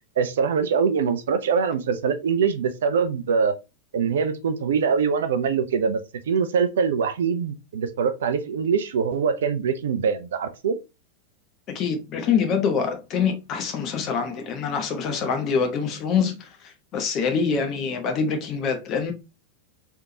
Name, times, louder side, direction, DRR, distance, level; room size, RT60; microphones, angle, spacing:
voice 1, 0.2-3.5 3.9-6.0 6.3-10.8, right 6 dB, 60° right, 0.5 m, -23 dB
voice 2, 11.7-19.1, left 6 dB, 35° left, 1.0 m, -25 dB
3.6 x 3.5 x 2.8 m
figure-of-eight pair, 90°, 0 cm